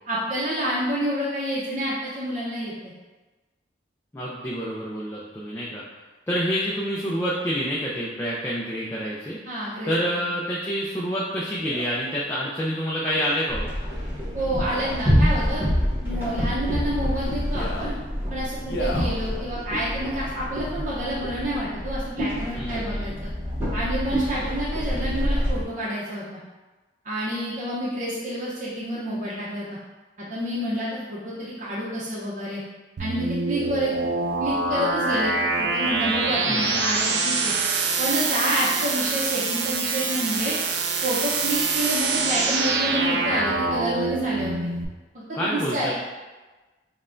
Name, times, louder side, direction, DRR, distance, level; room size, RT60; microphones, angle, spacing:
voice 1, 0.1-2.9 9.5-10.3 14.3-15.6 16.0-18.0 18.3-23.3 23.7-26.4 27.0-29.7 30.3-32.6 33.0-33.9 34.4-37.5 38.0-40.6 41.0-44.5 45.3-45.9, equal, 45° right, -8 dB, 0.7 m, -28 dB
voice 2, 4.1-5.8 6.3-9.4 9.8-13.7 22.5-23.1 36.4-36.8 45.3-45.9, equal, 15° left, -6 dB, 0.4 m, -27 dB
Male speech man speaking, 11.6-11.9 13.1-13.5 14.6-15.1 16.0-16.5 17.4-17.9 18.6-19.1 19.8-19.9, left 2 dB, 70° left, 0.5 m, -36 dB
sound 1, 13.5-25.6, equal, 10° right, 1.0 m, -27 dB
sound 2, 33.0-44.8, right 4 dB, 75° right, 0.4 m, -25 dB
5.5 x 2.2 x 2.5 m, 1.2 s
head